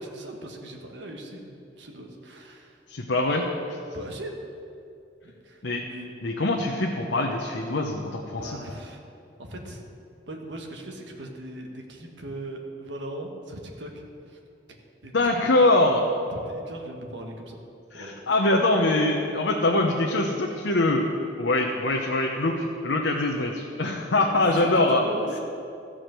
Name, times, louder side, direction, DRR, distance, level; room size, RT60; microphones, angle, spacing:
voice 1, 0.0-2.8 3.9-4.4 5.2-6.1 8.4-9.0 9.4-9.8 10.3-14.4 15.0-15.4 16.4-17.6 17.9-18.1 24.1-25.4, right 1 dB, 80° right, 2 dB, 1.4 m, -39 dB
voice 2, 2.9-3.8 5.6-5.8 6.2-8.5 15.1-16.0 17.9-21.0 21.4-25.0, left 2 dB, 85° left, 0 dB, 0.9 m, -23 dB
14.5 x 5.0 x 7.6 m, 2.5 s
head